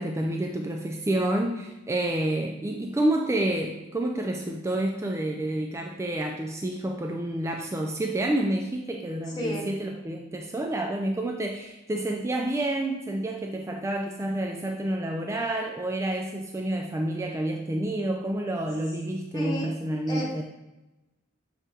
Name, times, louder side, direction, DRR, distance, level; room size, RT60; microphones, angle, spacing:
voice 1, 0.0-20.4, right 1 dB, 15° right, 2 dB, 0.3 m, -29 dB
voice 2, 9.3-9.7 19.3-19.7 20.1-20.3, equal, 20° left, -5 dB, 1.0 m, -32 dB
7.0 x 4.3 x 3.4 m, 1.0 s
head